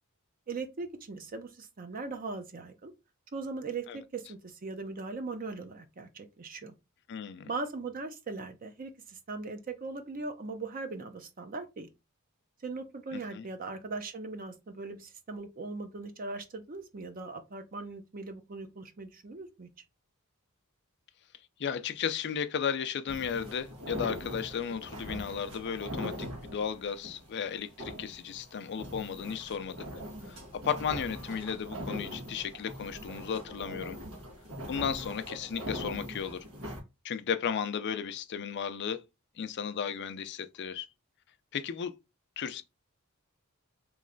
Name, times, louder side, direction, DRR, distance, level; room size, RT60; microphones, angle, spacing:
voice 1, 0.5-2.9 3.3-6.7 7.5-11.9 12.6-19.7, right 3 dB, 40° right, 0.6 m, -39 dB
voice 2, 7.1-7.5 13.1-13.5 21.6-29.8 30.3-34.0 34.7-36.4 37.0-39.0 39.4-40.9 41.5-41.9 42.4-42.6, left 7 dB, 55° left, 0.4 m, -34 dB
sound 1, 23.1-36.8, equal, 80° right, 1.5 m, -42 dB
3.1 x 3.1 x 3.7 m
head